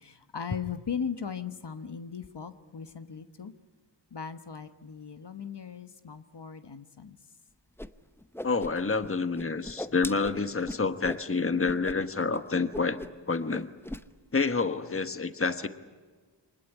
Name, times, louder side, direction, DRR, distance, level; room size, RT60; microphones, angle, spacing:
voice 1, 0.0-3.5 4.1-7.2, left 7 dB, 60° left, 9 dB, 1.2 m, -38 dB
Whoosh swoosh swish, 7.8-7.9 8.2-9.1 9.3-11.2 11.6-12.0 12.2-12.4 12.7-13.2 13.5-14.0, left 1 dB, 5° left, 0.8 m, -39 dB
voice 2, 8.4-13.0 13.3-13.7 14.3-15.7, left 4 dB, 25° left, 10 dB, 1.2 m, -28 dB
25.0 x 20.0 x 9.9 m, 1.4 s
wide cardioid pair, 65°, 47 cm